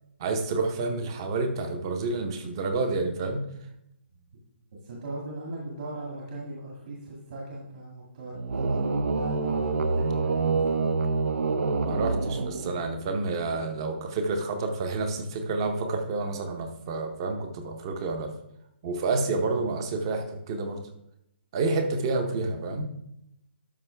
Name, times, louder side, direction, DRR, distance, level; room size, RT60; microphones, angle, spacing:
voice 1, 0.2-3.4 11.8-18.3 18.8-20.8 21.5-22.8, right 3 dB, 20° right, 6 dB, 0.7 m, -29 dB
voice 2, 4.8-10.9, right 2 dB, 45° right, -3 dB, 2.0 m, -39 dB
sound 1, 8.3-13.1, right 4 dB, 75° right, 0.7 m, -27 dB
12.0 x 5.4 x 3.3 m, 0.80 s
hypercardioid pair, 175°, 7 cm